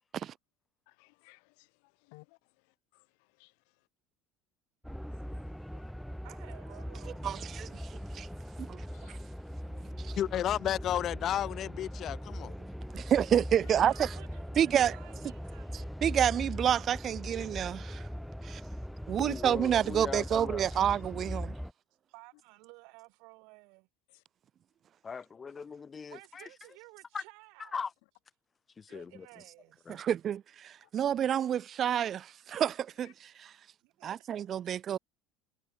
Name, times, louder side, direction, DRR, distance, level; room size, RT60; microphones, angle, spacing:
voice 1, 0.9-3.9 5.2-5.9 8.9-9.2 11.9-12.3 13.6-13.7 17.4-17.6 20.2-20.3 20.6-21.0 24.1-24.2 28.9-29.0 30.8-30.9 32.6-32.7 33.0-33.1, left 39 dB, 80° left, 4.6 m, -62 dB
sound 1, 4.8-21.7, equal, ahead, 2.9 m, -40 dB
voice 2, 6.2-8.2 9.6-10.4 13.6-16.0 22.1-23.9 26.1-27.8 28.9-30.0 33.8-34.3, right 30 dB, 70° right, 7.9 m, -55 dB
voice 3, 10.2-12.5, left 11 dB, 40° left, 0.4 m, -32 dB
voice 4, 12.9-14.1 14.6-15.0 16.0-18.0 18.4-18.6 19.1-21.5 29.9-33.1 33.4-33.5 34.0-35.0, right 9 dB, 35° right, 0.5 m, -28 dB
voice 5, 19.2-20.7 25.0-26.5 27.1-27.2 27.6-27.9 28.8-29.3 29.9-30.0, left 5 dB, 20° left, 2.1 m, -39 dB
cardioid pair, 140°, 0 cm